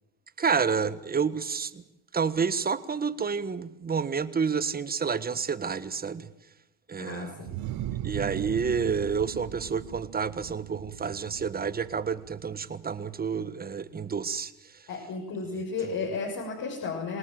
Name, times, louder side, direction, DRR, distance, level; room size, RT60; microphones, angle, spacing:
voice 1, 0.4-1.8 2.1-6.3 6.9-7.4 8.0-14.5, right 6 dB, 20° right, 1.5 m, -29 dB
voice 2, 7.0-7.5 14.9-17.2, left 4 dB, 55° left, 6.6 m, -33 dB
sound 1, 7.5-13.0, right 12 dB, 55° right, 1.5 m, -38 dB
27.5 x 18.0 x 7.7 m
supercardioid pair, 110°, 40 cm